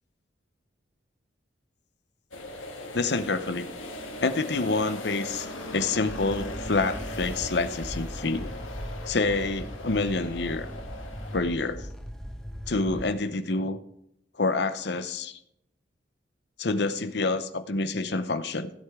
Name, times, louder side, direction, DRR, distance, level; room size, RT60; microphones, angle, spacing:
sound 1, 2.3-11.4, left 1 dB, 90° left, 1.9 m, -39 dB
voice 1, 2.9-3.7 4.2-5.5 5.7-8.5 9.1-10.7 11.3-11.8 12.7-13.8 14.4-15.4 16.6-18.7, left 3 dB, 60° left, 11 dB, 0.8 m, -27 dB
sound 2, 5.0-13.1, equal, ahead, 1.0 m, -39 dB
16.0 x 8.0 x 3.6 m, 0.77 s
head